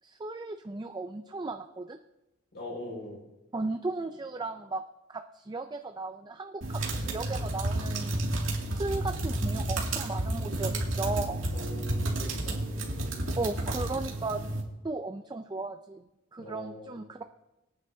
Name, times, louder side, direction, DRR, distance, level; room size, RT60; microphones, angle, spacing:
voice 1, 0.0-2.0 3.5-4.8 5.1-8.3 8.7-11.4 13.4-14.4 14.8-16.0 16.3-17.2, right 3 dB, 20° right, 7 dB, 0.4 m, -36 dB
voice 2, 2.5-3.2 11.5-12.6 16.4-17.1, left 1 dB, 55° left, -3 dB, 5.5 m, -42 dB
sound 1, 6.6-14.6, right 1 dB, 80° right, 2.4 m, -31 dB
22.5 x 9.6 x 2.8 m, 0.95 s
head